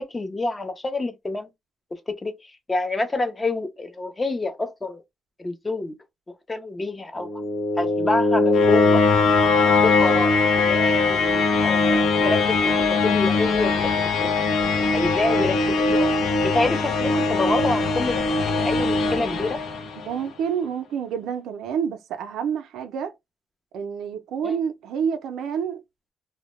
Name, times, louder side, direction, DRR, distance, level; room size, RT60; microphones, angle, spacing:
voice 1, 0.0-1.5 2.2-5.0 5.4-5.9 6.5-7.4 7.8-9.1 9.6-12.6 13.0-14.3 14.9-16.1 16.4-19.6 24.4-24.6, left 2 dB, 20° left, 0.5 m, -27 dB
sound 1, 7.2-20.2, left 3 dB, 75° left, 0.5 m, -21 dB
voice 2, 20.1-23.1 23.7-25.8, right 7 dB, 80° right, 0.4 m, -28 dB
2.1 x 2.0 x 2.9 m
cardioid pair, 90°, 0 cm